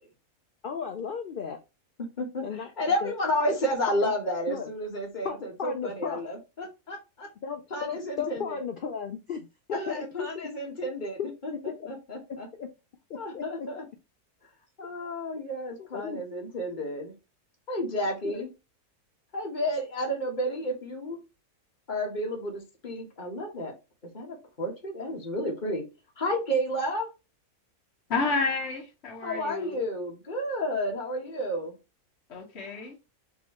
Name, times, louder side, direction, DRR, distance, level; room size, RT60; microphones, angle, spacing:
voice 1, 0.6-1.6 2.4-2.7 3.0-3.1 3.4-3.6 4.0-4.1 4.5-4.7 5.2-6.2 7.4-9.5 9.9-10.5 11.2-11.3 11.6-11.9 12.5-12.7 13.3-13.7 15.8-16.2 18.2-18.4, left 7 dB, 80° left, 5 dB, 0.4 m, -35 dB
voice 2, 2.8-7.3 7.7-8.6 9.7-11.5 11.9-12.5 13.1-13.8 14.8-17.1 17.7-18.5 19.3-21.2 21.9-23.7 24.1-25.8 26.2-27.1 29.2-31.8, equal, 35° left, 1 dB, 1.3 m, -31 dB
voice 3, 28.1-29.8 32.3-33.0, left 4 dB, 50° left, -1 dB, 1.1 m, -30 dB
4.1 x 3.5 x 3.0 m, 0.27 s
omnidirectional pair, 1.6 m